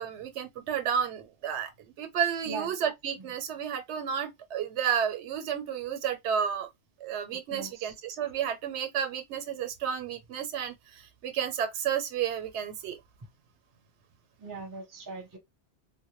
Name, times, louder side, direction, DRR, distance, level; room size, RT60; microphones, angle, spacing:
voice 1, 0.0-6.7 7.0-13.0, right 8 dB, 85° right, 0.9 m, -31 dB
voice 2, 7.5-7.9 14.4-15.4, right 4 dB, 25° right, 0.5 m, -40 dB
2.1 x 2.1 x 2.9 m
omnidirectional pair, 1.1 m